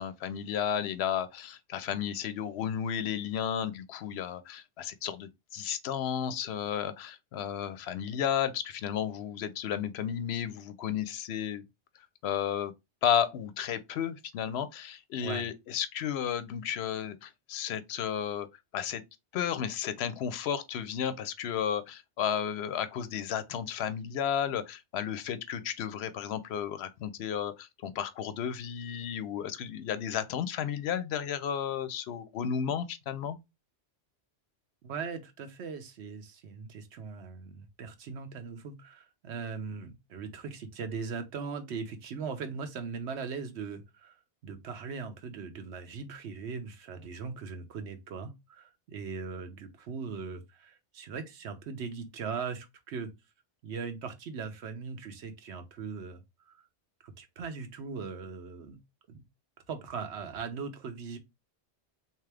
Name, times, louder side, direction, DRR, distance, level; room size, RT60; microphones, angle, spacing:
voice 1, 0.0-11.6 12.2-12.7 13.0-18.5 18.7-19.0 19.3-33.4, left 8 dB, 75° left, 0.8 m, -33 dB
voice 2, 34.8-53.1 53.6-56.7 57.0-58.8 59.1-59.2 59.7-61.2, right 5 dB, 80° right, 1.0 m, -39 dB
3.7 x 2.9 x 3.3 m
omnidirectional pair, 1.1 m